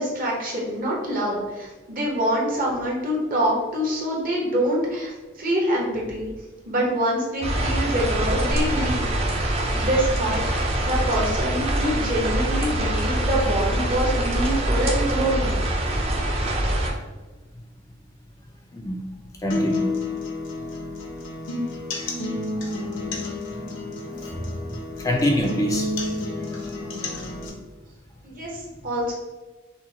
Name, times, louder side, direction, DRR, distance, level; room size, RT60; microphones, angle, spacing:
voice 1, 0.0-5.1 5.4-6.3 6.6-9.4 9.7-10.4 10.8-15.6 28.2-29.1, equal, 50° right, -3 dB, 1.1 m, -25 dB
sound 1, 7.4-16.9, right 1 dB, 35° right, 0.6 m, -24 dB
voice 2, 18.7-19.0 19.4-19.9 22.6-23.3 24.1-26.0 26.5-26.6, left 1 dB, 15° left, 1 dB, 0.3 m, -27 dB
sound 2, 19.5-27.5, left 2 dB, 85° left, 0.7 m, -30 dB
5.6 x 2.1 x 2.9 m, 1.2 s
head